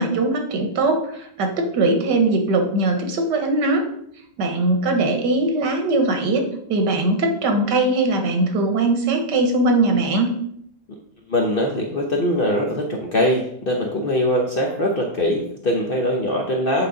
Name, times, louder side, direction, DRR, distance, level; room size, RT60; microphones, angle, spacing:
voice 1, 0.0-3.9 4.4-6.4 6.7-10.3, right 2 dB, 85° right, 4 dB, 1.7 m, -20 dB
voice 2, 11.3-16.9, left 1 dB, 45° left, 0 dB, 0.7 m, -22 dB
8.4 x 3.8 x 3.9 m, 0.70 s
omnidirectional pair, 1.8 m